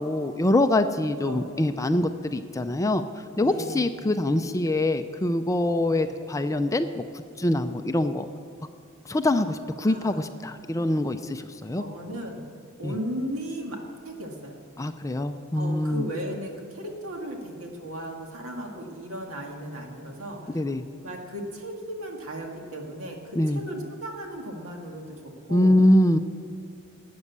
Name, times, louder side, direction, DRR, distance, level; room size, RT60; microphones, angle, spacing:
voice 1, 0.0-3.0 3.4-7.0 7.4-8.2 9.1-11.8 12.8-12.9 14.8-16.1 20.5-20.8 23.4-23.6 25.5-26.2, left 1 dB, 15° left, 9 dB, 0.4 m, -24 dB
voice 2, 1.2-1.6 3.4-3.9 5.5-6.0 9.8-10.3 11.7-12.4 12.8-13.8 14.1-14.6 15.6-20.6 21.0-25.7, right 1 dB, 70° right, 1 dB, 2.1 m, -36 dB
12.5 x 8.5 x 8.1 m, 2.5 s
head